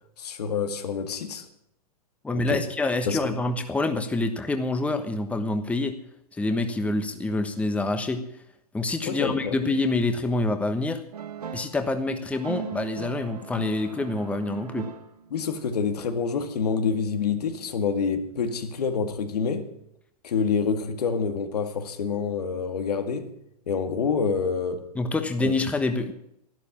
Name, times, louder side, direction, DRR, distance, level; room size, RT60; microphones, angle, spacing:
voice 1, 0.2-1.5 2.3-2.6 3.1-3.2 9.0-9.6 15.3-19.7 20.2-23.3 23.7-24.9 25.4-25.5, left 5 dB, 80° left, 2.0 m, -27 dB
voice 2, 2.2-5.9 6.4-8.2 8.7-11.0 11.5-14.9 24.9-26.1, left 2 dB, 5° left, 1.2 m, -26 dB
sound 1, 11.1-11.8 12.3-15.4, right 6 dB, 85° right, 1.5 m, -37 dB
12.0 x 12.0 x 7.3 m
hypercardioid pair, 130°, 20 cm